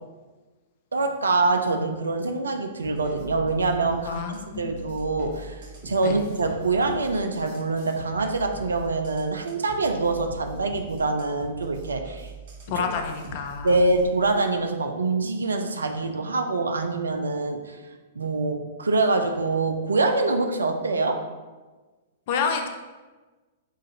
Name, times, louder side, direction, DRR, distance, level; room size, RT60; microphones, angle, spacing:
voice 1, 0.9-12.3 13.6-17.8 18.1-21.2, right 3 dB, 70° right, 5 dB, 0.4 m, -25 dB
sound 1, 2.8-14.1, right 1 dB, 55° right, 0.9 m, -41 dB
voice 2, 4.0-4.8 6.0-6.2 12.7-13.8 22.3-22.7, left 6 dB, 45° left, 5 dB, 0.4 m, -29 dB
5.6 x 2.4 x 2.8 m, 1.3 s
figure-of-eight pair, 105°, 0 cm